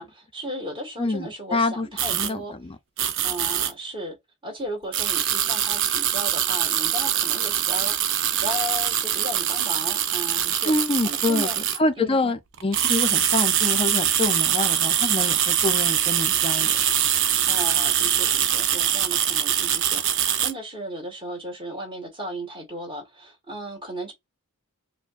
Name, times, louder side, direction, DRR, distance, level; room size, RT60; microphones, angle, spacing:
voice 1, 0.0-2.5 3.2-4.2 4.4-10.7 11.0-11.6 12.0-12.4 17.5-24.1, equal, 20° right, 1.6 m, -35 dB
voice 2, 1.0-1.9 2.1-2.8 10.6-11.5 11.8-16.8, left 2 dB, 25° left, 0.5 m, -26 dB
sound 1, 2.0-2.3 3.0-3.7 4.9-11.8 12.5-20.5, right 10 dB, 60° right, 0.6 m, -23 dB
4.9 x 2.2 x 2.4 m
head